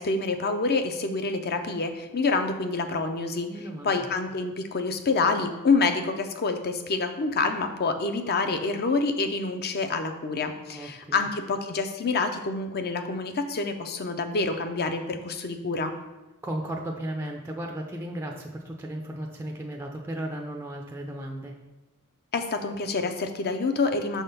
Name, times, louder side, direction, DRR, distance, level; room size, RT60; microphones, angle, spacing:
voice 1, 0.0-3.5 3.8-15.9 22.3-24.2, left 3 dB, 45° left, 7 dB, 0.6 m, -27 dB
voice 2, 3.5-4.1 10.7-11.3 16.4-21.6, right 1 dB, 10° right, 0 dB, 0.4 m, -35 dB
6.0 x 3.6 x 5.6 m, 1.1 s
head